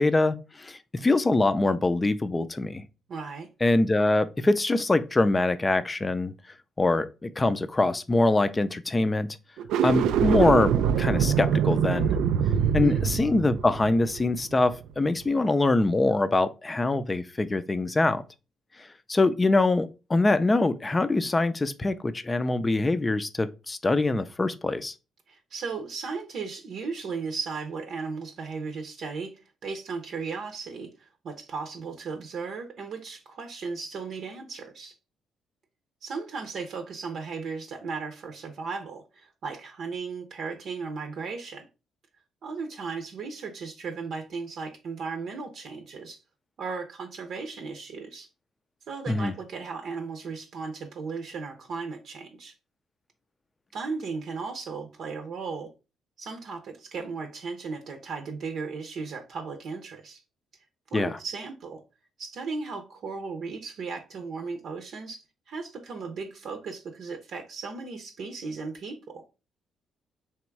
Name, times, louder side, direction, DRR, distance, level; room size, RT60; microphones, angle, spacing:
voice 1, 0.0-2.8 3.6-6.3 6.8-9.3 9.8-12.2 12.7-18.2 19.1-24.9 49.1-49.3 60.9-61.2, left 2 dB, 20° left, 0.4 m, -24 dB
voice 2, 3.1-3.5 12.5-13.1 25.3-35.0 36.0-41.7 42.4-46.2 46.6-48.3 48.9-52.5 53.7-55.7 56.2-60.2 60.9-61.8 62.2-69.0, right 4 dB, 65° right, 0.7 m, -36 dB
sound 1, 9.6-14.9, right 8 dB, 90° right, 0.3 m, -24 dB
3.5 x 3.0 x 4.6 m
cardioid pair, 90°, 0 cm